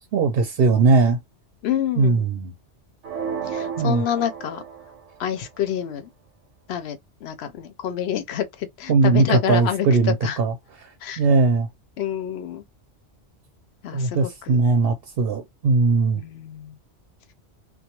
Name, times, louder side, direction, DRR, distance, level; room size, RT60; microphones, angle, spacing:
voice 1, 0.1-1.2 2.0-2.5 3.8-4.0 8.9-10.9 11.2-11.7 13.9-16.2, right 4 dB, 65° right, 0.7 m, -19 dB
voice 2, 1.6-2.3 3.5-4.6 5.2-6.1 6.7-10.4 11.0-11.2 12.0-12.6 13.8-14.6 16.1-16.7, left 9 dB, 70° left, 0.8 m, -28 dB
sound 1, 3.0-5.1, right 7 dB, 90° right, 1.0 m, -32 dB
2.3 x 2.2 x 2.8 m
omnidirectional pair, 1.2 m